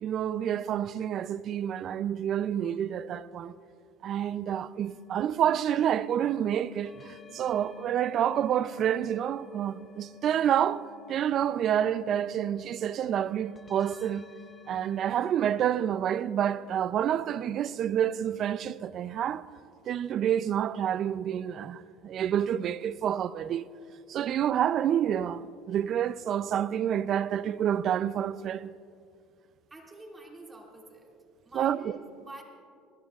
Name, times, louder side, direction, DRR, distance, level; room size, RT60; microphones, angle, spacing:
voice 1, 0.0-3.6 4.0-14.3 14.7-19.5 19.9-23.7 24.1-28.7 31.5-32.0, right 10 dB, 50° right, 0.4 m, -28 dB
sound 1, 4.8-15.2, left 7 dB, 25° left, 0.9 m, -53 dB
voice 2, 29.7-31.1 31.4-32.4, right 2 dB, 15° right, 2.3 m, -48 dB
20.5 x 19.5 x 2.4 m
supercardioid pair, 100°, 0 cm